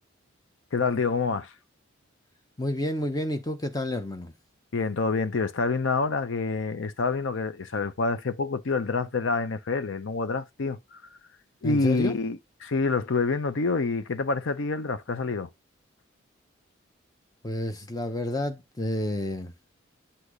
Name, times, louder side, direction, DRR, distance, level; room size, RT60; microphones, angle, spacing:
voice 1, 0.7-1.5 4.7-11.0 11.6-15.5, left 4 dB, 70° left, 0.6 m, -27 dB
voice 2, 2.6-4.3 11.6-12.2 17.4-19.5, left 1 dB, 20° left, 0.8 m, -30 dB
8.1 x 2.9 x 4.8 m
head